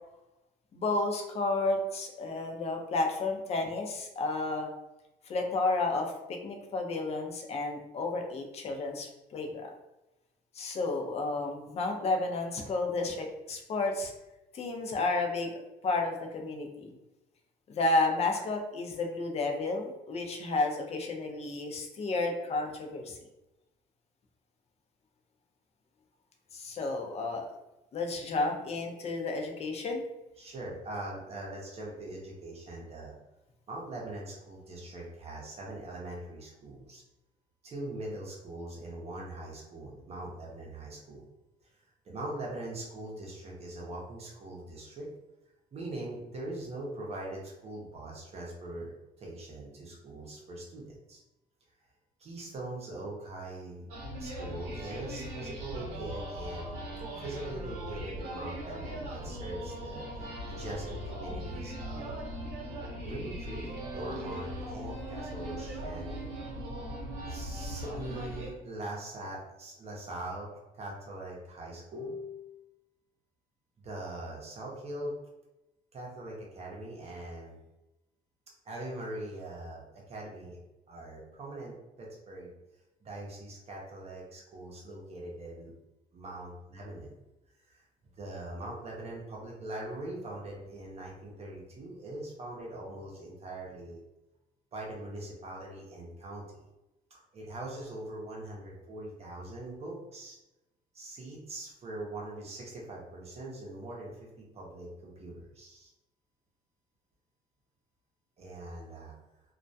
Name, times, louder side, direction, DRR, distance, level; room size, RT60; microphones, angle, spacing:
voice 1, 0.7-4.7 5.3-9.7 10.5-14.1 14.5-15.5 15.8-16.9 17.7-23.2 26.5-27.5 27.9-30.0, left 3 dB, 40° left, 2 dB, 0.5 m, -31 dB
voice 2, 30.4-33.1 33.7-37.0 37.6-41.2 41.6-41.7 42.0-45.1 45.7-48.9 49.2-51.2 52.2-53.9 54.2-56.8 57.2-60.1 60.4-62.1 63.0-66.3 67.3-70.5 70.7-72.6 73.8-75.1 75.9-77.6 78.6-80.6 80.9-82.5 83.0-85.7 86.1-87.2 87.7-87.8 88.2-94.0 94.7-96.6 97.1-100.4 100.9-105.9 108.4-109.1, right 1 dB, 40° right, -3 dB, 0.6 m, -41 dB
sound 1, 53.9-68.5, equal, 85° right, 0.7 m, -39 dB
2.2 x 2.1 x 2.6 m, 0.95 s
cardioid pair, 110°, 17 cm